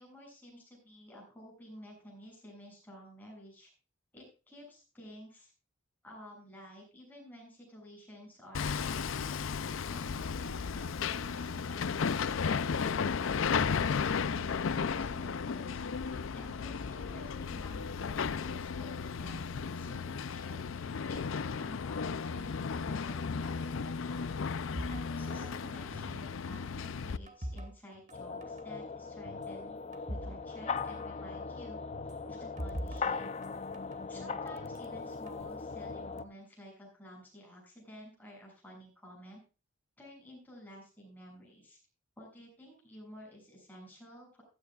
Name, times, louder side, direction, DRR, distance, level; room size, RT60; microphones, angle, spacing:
voice 1, 0.0-3.7 4.1-5.5 6.0-24.3 24.9-29.8 30.1-31.8 32.3-33.3 34.1-39.4 40.0-41.8 42.2-44.4, equal, 10° left, -2 dB, 7.1 m, -52 dB
Hammer, 8.5-27.2, left 6 dB, 80° left, 0.5 m, -34 dB
sound 1, 24.8-26.3 26.6-28.2 28.4-28.7 29.3-30.4 30.6-30.7 31.9-34.0 34.6-35.4, equal, 35° right, 1.4 m, -43 dB
sound 2, 28.1-36.2, left 4 dB, 35° left, 0.6 m, -39 dB
15.5 x 13.0 x 2.4 m, 0.32 s
head